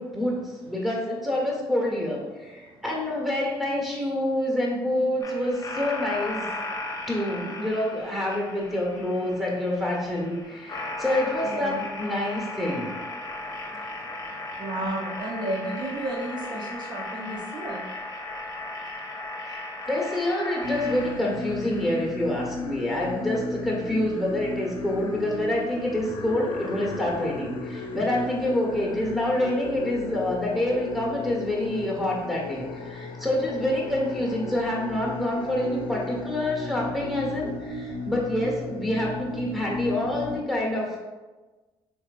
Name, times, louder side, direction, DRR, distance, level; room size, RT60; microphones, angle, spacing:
voice 1, 0.0-6.5 7.1-13.0 19.4-19.6 19.9-41.0, left 1 dB, ahead, -2 dB, 1.3 m, -27 dB
sound 1, 5.2-21.9, left 2 dB, 40° left, 0.8 m, -36 dB
voice 2, 11.4-11.9 14.6-17.8 28.7-29.0, right 1 dB, 50° right, -2 dB, 0.6 m, -32 dB
sound 2, 20.6-40.4, left 3 dB, 65° left, 0.5 m, -35 dB
4.5 x 2.9 x 2.4 m, 1.2 s
supercardioid pair, 70°, 10 cm